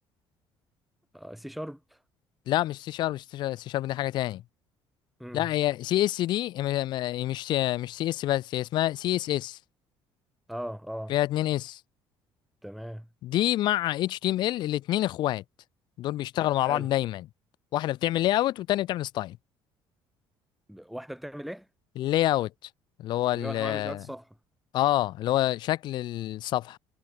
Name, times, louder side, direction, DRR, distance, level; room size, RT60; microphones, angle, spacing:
voice 1, 1.1-2.0 5.2-5.5 10.5-11.1 12.6-13.1 16.6-16.9 20.7-21.7 23.3-24.3, equal, ahead, 3.3 m, -38 dB
voice 2, 2.5-4.4 5.3-9.6 11.1-11.8 13.2-15.4 16.0-17.2 17.7-19.4 22.0-22.5 23.0-24.0 24.7-26.8, left 14 dB, 55° left, 1.5 m, -27 dB
cardioid pair, 165°, 9 cm